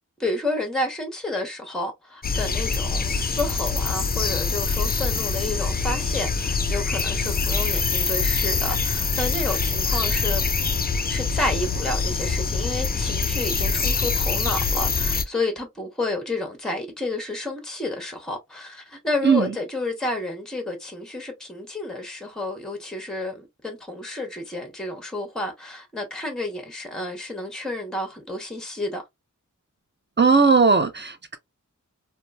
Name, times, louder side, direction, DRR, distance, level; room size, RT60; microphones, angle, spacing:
voice 1, 0.2-10.4 11.1-29.0, left 2 dB, ahead, 0.8 m, -30 dB
sound 1, 2.2-15.2, left 4 dB, 30° left, 0.4 m, -24 dB
voice 2, 30.2-31.4, right 5 dB, 35° right, 0.5 m, -18 dB
2.9 x 2.2 x 2.2 m
wide cardioid pair, 50°, 32 cm